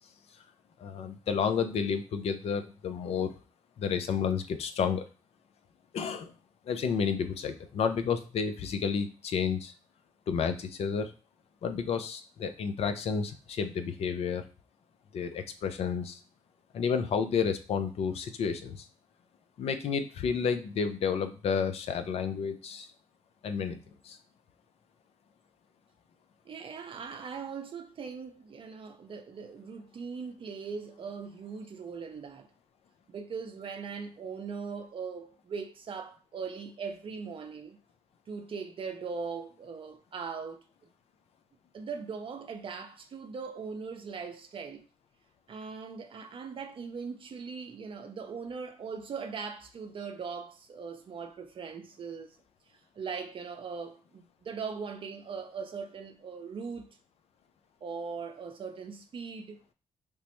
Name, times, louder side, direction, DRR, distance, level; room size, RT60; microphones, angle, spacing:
voice 1, 0.8-3.4 3.8-5.1 5.9-6.3 6.7-9.7 10.3-11.1 11.6-14.4 15.1-16.2 16.7-18.9 19.6-22.9 23.4-23.8 24.0-24.2, left 6 dB, 60° left, 0.5 m, -31 dB
voice 2, 26.5-32.5 33.1-37.8 38.3-40.6 41.7-44.9 45.5-52.4 52.9-57.0 57.8-59.6, right 5 dB, 50° right, 0.5 m, -40 dB
3.3 x 2.0 x 3.0 m
hypercardioid pair, 50°, 12 cm